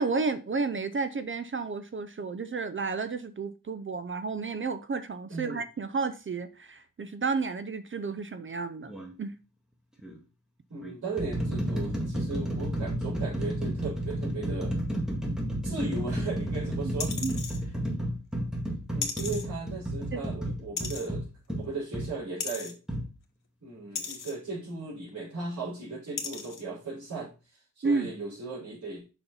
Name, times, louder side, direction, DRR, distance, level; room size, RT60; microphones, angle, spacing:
voice 1, 0.0-9.3 16.8-16.9 17.2-17.4 20.1-20.5 27.8-28.1, right 4 dB, 40° right, 10 dB, 0.6 m, -32 dB
voice 2, 5.3-5.6 10.7-14.8 15.6-17.1 18.9-21.2 21.6-22.7 23.6-29.1, right 3 dB, 65° right, -10 dB, 4.2 m, -37 dB
sound 1, 8.9-9.1 10.0-10.2 10.8-22.1 22.9-23.1, right 1 dB, ahead, 1.9 m, -32 dB
sound 2, 17.0-17.6 19.0-19.4 20.8-21.1 22.4-22.7 23.9-24.3 25.4-25.5 26.2-26.6 27.1-27.2, left 5 dB, 85° left, 1.4 m, -35 dB
7.0 x 5.7 x 3.9 m, 0.32 s
wide cardioid pair, 150°, 32 cm